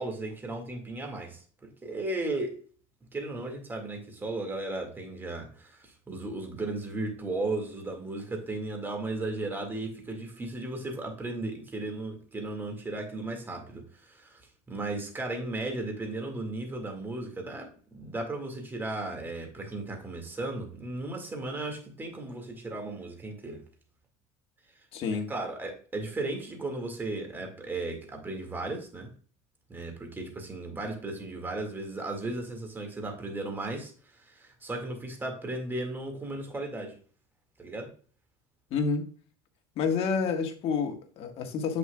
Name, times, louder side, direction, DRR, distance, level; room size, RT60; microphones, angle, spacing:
voice 1, 0.0-2.6 3.1-14.4 14.7-23.6 25.1-29.1 29.7-33.9 34.2-37.0 37.6-37.9, right 2 dB, 15° right, 2.0 m, -35 dB
voice 2, 24.9-25.3 38.7-39.1 39.8-41.8, left 5 dB, 50° left, 1.5 m, -29 dB
7.4 x 6.7 x 2.3 m
cardioid pair, 125°, 13 cm